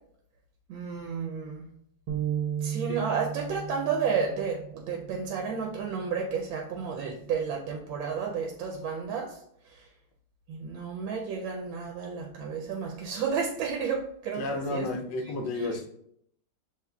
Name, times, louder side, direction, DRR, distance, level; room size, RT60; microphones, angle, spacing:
voice 1, 0.7-1.7 2.6-9.4 10.5-14.9, right 6 dB, 85° right, 1 dB, 1.4 m, -32 dB
sound 1, 2.1-8.3, right 8 dB, 65° right, 0.9 m, -37 dB
voice 2, 14.3-15.9, left 2 dB, 75° left, 4 dB, 1.2 m, -32 dB
7.3 x 3.0 x 2.3 m, 0.71 s
omnidirectional pair, 2.1 m